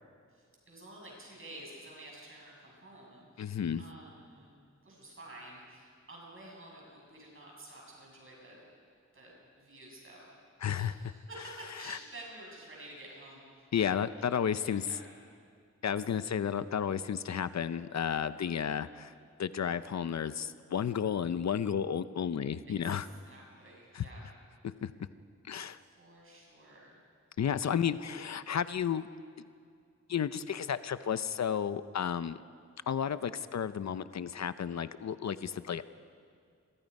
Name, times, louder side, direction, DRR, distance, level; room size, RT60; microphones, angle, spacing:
voice 1, 0.3-8.7 9.1-10.3 10.7-15.0 16.0-16.4 18.3-18.9 22.7-24.3 25.7-27.0 27.7-28.0, right 1 dB, 45° right, -3 dB, 7.3 m, -51 dB
voice 2, 3.4-3.8 10.6-11.0 11.8-12.0 13.7-14.8 15.8-19.1 19.4-23.1 23.9-24.0 24.8-24.9 25.4-25.8 27.4-29.1 30.1-32.4 32.9-35.8, left 8 dB, 65° left, 13 dB, 0.6 m, -32 dB
29.0 x 23.0 x 5.4 m, 2.2 s
wide cardioid pair, 160°, 29 cm